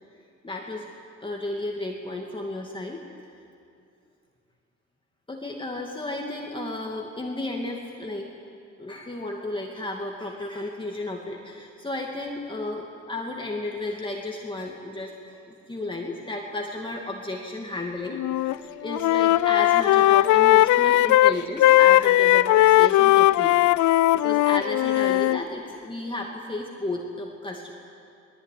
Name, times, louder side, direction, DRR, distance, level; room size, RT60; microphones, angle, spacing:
voice 1, 0.4-0.9 1.2-3.0 5.3-8.3 8.8-23.5 23.8-27.7, left 2 dB, 15° left, -1 dB, 2.4 m, -33 dB
Wind instrument woodwind instrument, 18.1-18.6 18.8-25.4, left 16 dB, 75° left, 0.5 m, -18 dB
21.5 x 20.0 x 9.4 m, 2.5 s
cardioid pair, 90°, 30 cm